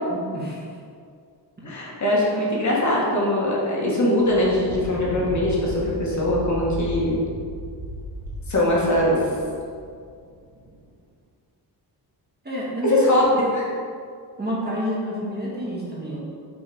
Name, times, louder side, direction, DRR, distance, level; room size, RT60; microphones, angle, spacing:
voice 1, 0.1-0.6 1.6-1.7 12.4-13.2 14.4-16.3, equal, 25° right, -6 dB, 1.4 m, -29 dB
voice 2, 1.6-7.2 8.5-9.2 12.8-13.2 13.5-13.6, left 1 dB, 45° left, -5 dB, 1.5 m, -21 dB
Thunder, 4.1-10.8, equal, 65° right, 1.1 m, -35 dB
6.4 x 3.8 x 4.8 m, 2.2 s
wide cardioid pair, 140°, 41 cm